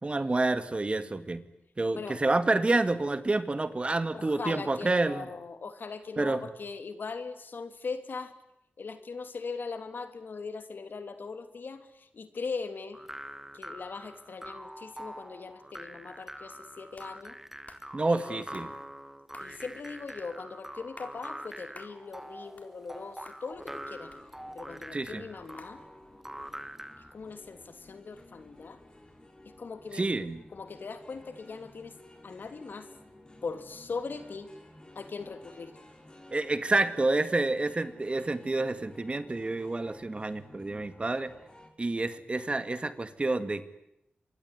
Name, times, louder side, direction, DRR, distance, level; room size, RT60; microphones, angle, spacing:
voice 1, 0.0-1.4 1.8-5.3 6.2-6.4 17.9-18.7 24.9-25.2 29.9-30.4 36.3-41.3 41.8-43.6, right 2 dB, 35° right, 11 dB, 2.1 m, -28 dB
voice 2, 4.1-8.3 8.8-13.0 13.5-17.4 18.0-18.7 19.4-24.1 24.5-25.8 27.1-28.8 29.4-30.1 30.5-31.9 32.2-32.9 33.4-34.5 34.9-35.7, left 4 dB, 70° left, 9 dB, 3.1 m, -40 dB
sound 1, 12.9-27.1, right 1 dB, 10° right, 1.8 m, -44 dB
sound 2, 17.0-17.1 17.7-17.9 18.5-18.7 19.3-19.5 20.2-20.3 20.8-21.2 21.7-22.0 22.4-23.0 23.3-23.4 24.1-24.7 25.6-25.8, left 3 dB, 45° left, 4.0 m, -51 dB
sound 3, 23.5-41.7, left 1 dB, 25° left, 6.7 m, -54 dB
26.0 x 23.0 x 9.6 m, 0.82 s
wide cardioid pair, 85°, 3 cm